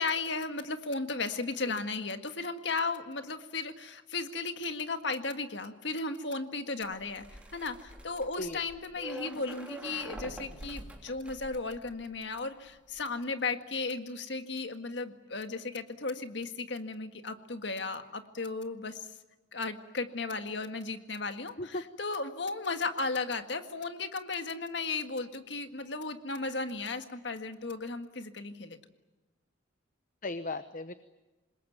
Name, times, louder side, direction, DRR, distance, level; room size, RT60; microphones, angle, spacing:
voice 1, 0.0-19.1 19.5-28.8, left 3 dB, 60° left, 8 dB, 1.8 m, -35 dB
sound 1, 6.8-12.4 12.7-13.0, right 1 dB, 5° right, 3.2 m, -46 dB
voice 2, 30.2-30.9, left 2 dB, 45° left, 11 dB, 0.9 m, -36 dB
26.5 x 21.0 x 9.3 m, 1.1 s
head